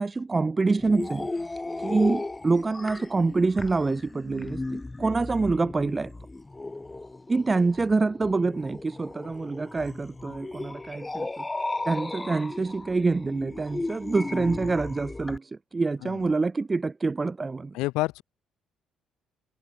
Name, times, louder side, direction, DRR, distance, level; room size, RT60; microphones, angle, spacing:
voice 1, 0.0-6.1 7.3-11.4 11.8-17.8, right 3 dB, 25° right, 1.4 m, -26 dB
sound 1, 0.8-15.4, left 2 dB, 20° left, 1.3 m, -35 dB
voice 2, 17.7-18.2, left 20 dB, 85° left, 0.7 m, -28 dB
supercardioid pair, 70°, 0 cm